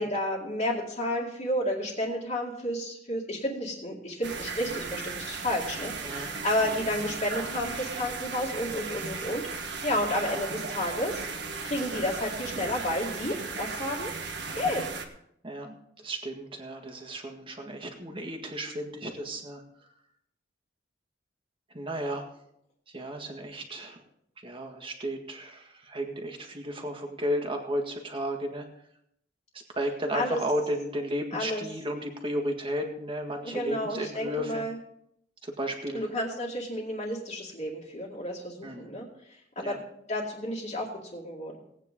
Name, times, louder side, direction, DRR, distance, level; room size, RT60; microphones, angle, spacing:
voice 1, 0.0-11.3 11.6-14.1 14.5-14.8 30.1-30.4 31.3-31.6 33.4-34.8 35.9-39.1 39.6-39.8 40.1-41.5, left 1 dB, 40° left, -6 dB, 2.2 m, -31 dB
sound 1, 4.2-15.1, right 4 dB, 65° right, 1.4 m, -36 dB
voice 2, 6.0-6.3 14.5-14.8 15.4-19.6 21.7-22.3 22.9-24.0 24.4-28.6 29.7-34.6 35.4-36.1 38.6-38.9 39.6-39.8, equal, 30° right, 3 dB, 1.8 m, -34 dB
18.0 x 9.1 x 3.7 m, 0.74 s
head